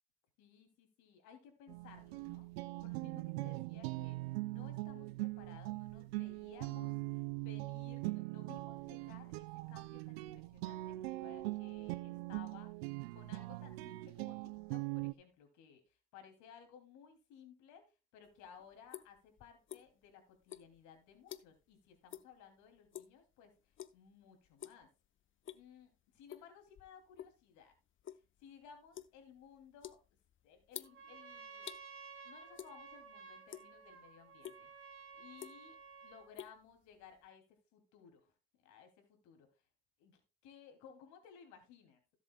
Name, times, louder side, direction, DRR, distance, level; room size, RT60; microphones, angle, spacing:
voice 1, 0.4-2.5 2.8-12.7 13.1-24.9 25.5-27.7 28.1-30.0 30.4-31.7 32.2-39.6 40.0-42.0, left 7 dB, 70° left, 5 dB, 3.1 m, -59 dB
sound 1, 1.7-15.1, right 21 dB, 80° right, 0.6 m, -41 dB
sound 2, 18.2-20.1 20.4-21.7 22.1-22.3 22.7-23.2 23.7-24.1 24.5-24.9 25.3-25.8 26.3-27.4 27.7-31.8 32.5-33.1 33.4-34.0 34.4-34.6 35.1-35.8 36.1-37.2, left 10 dB, 40° left, 0.8 m, -50 dB
Trumpet, 30.8-36.3, right 5 dB, 45° right, 3.0 m, -54 dB
16.5 x 7.4 x 2.3 m, 0.30 s
hypercardioid pair, 65°, 30 cm